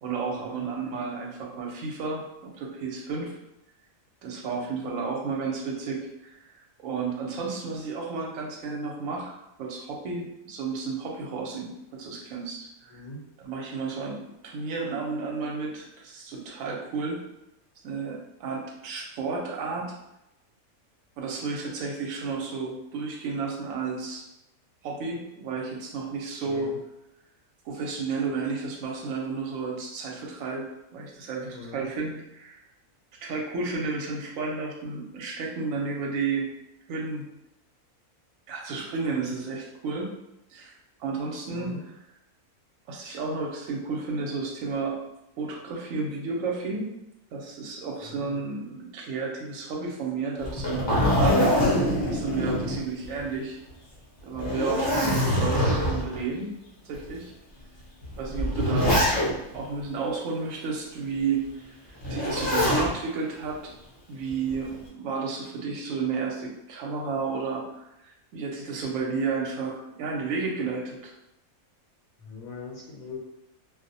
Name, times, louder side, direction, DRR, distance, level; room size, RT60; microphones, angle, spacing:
voice 1, 0.0-3.4 4.2-6.5 6.8-13.0 13.4-17.2 17.8-19.9 21.2-24.2 24.8-26.7 27.6-32.6 33.2-36.5 36.9-37.3 38.5-40.1 40.5-40.7 41.0-42.0 42.9-45.0 45.4-46.8 47.3-50.9 51.1-51.6 52.1-53.6 54.2-56.5 56.8-57.3 58.2-59.0 59.5-61.4 61.7-61.8 62.1-63.7 64.1-71.1, right 4 dB, 70° right, -1 dB, 1.0 m, -32 dB
voice 2, 12.9-13.2 26.5-26.8 31.5-31.9 41.5-41.8 48.1-48.4 72.2-73.2, left 3 dB, 90° left, -3 dB, 1.1 m, -41 dB
Zipper (clothing), 50.4-53.3 53.7-53.8 54.3-56.2 56.9-57.0 58.0-59.6 62.0-62.9 64.3-64.8, left 1 dB, 40° left, 0.4 m, -24 dB
2.5 x 2.0 x 2.6 m, 0.85 s
omnidirectional pair, 1.6 m